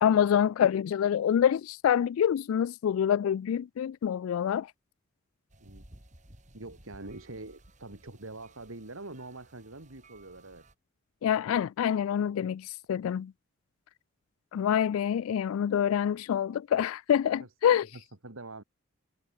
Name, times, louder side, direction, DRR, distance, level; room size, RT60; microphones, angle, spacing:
voice 1, 0.0-4.7 11.2-13.3 14.5-17.9, left 9 dB, 80° left, 0.3 m, -26 dB
sound 1, 5.5-10.7, right 1 dB, 35° right, 3.8 m, -56 dB
voice 2, 6.5-10.7 17.4-17.5 17.9-18.6, right 2 dB, 75° right, 2.1 m, -44 dB
head